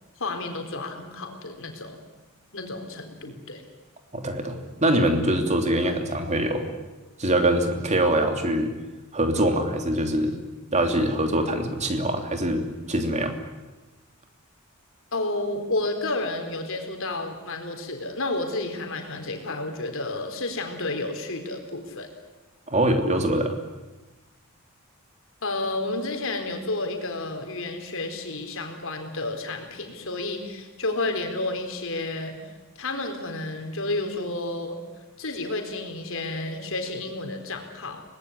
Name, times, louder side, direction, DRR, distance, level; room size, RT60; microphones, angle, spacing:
voice 1, 0.2-2.0 2.5-3.6 15.1-22.1 25.4-32.4 32.8-34.8 35.2-38.0, left 2 dB, 60° left, 5 dB, 4.1 m, -31 dB
voice 2, 4.1-6.7 7.2-8.7 9.1-10.4 10.7-13.3 22.7-23.6, right 1 dB, 30° right, 5 dB, 3.0 m, -23 dB
24.0 x 19.5 x 9.9 m, 1.1 s
head